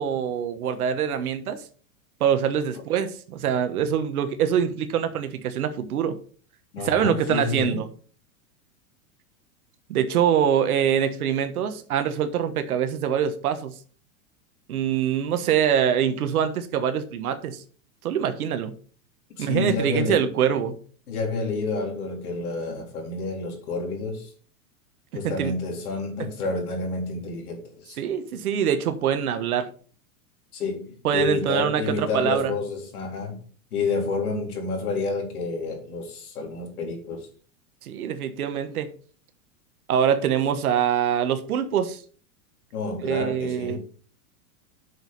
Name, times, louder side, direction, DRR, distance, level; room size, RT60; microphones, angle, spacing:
voice 1, 0.0-1.6 2.2-6.2 6.8-7.9 9.9-13.7 14.7-17.6 18.0-18.7 19.4-20.8 25.2-25.5 28.0-29.7 31.0-32.5 37.8-38.9 39.9-42.0 43.0-43.9, right 8 dB, 85° right, 1.4 m, -24 dB
voice 2, 6.7-7.8 19.4-20.3 21.1-24.3 25.1-28.0 30.5-33.4 33.7-37.3 42.7-43.8, left 3 dB, 90° left, 4.0 m, -29 dB
7.9 x 6.4 x 5.3 m
supercardioid pair, 130°, 43 cm